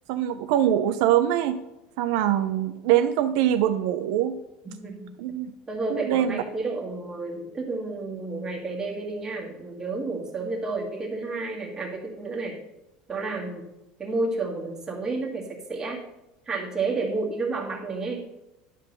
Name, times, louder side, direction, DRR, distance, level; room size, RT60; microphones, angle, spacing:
voice 1, 0.1-1.6 2.0-4.3 5.2-5.5 5.9-6.4, right 11 dB, 75° right, 9 dB, 0.5 m, -23 dB
voice 2, 4.6-5.1 5.7-12.6 13.1-13.7 14.0-16.0 16.5-18.3, right 3 dB, 20° right, -1 dB, 1.8 m, -31 dB
10.5 x 3.8 x 6.6 m, 0.94 s
cardioid pair, 145°, 3 cm